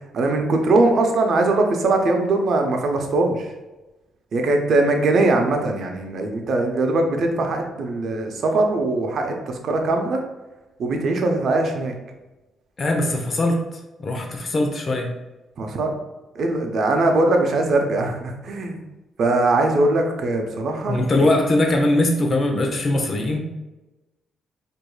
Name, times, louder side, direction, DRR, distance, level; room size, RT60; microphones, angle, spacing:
voice 1, 0.1-3.5 4.3-10.2 10.8-11.9 15.6-15.9 16.4-18.8 19.2-21.3, right 2 dB, 60° right, 3 dB, 0.6 m, -21 dB
voice 2, 12.8-13.6 14.0-15.1 20.9-23.4, left 1 dB, 40° left, 3 dB, 0.7 m, -21 dB
4.6 x 2.6 x 2.3 m, 1.1 s
cardioid pair, 90°, 0 cm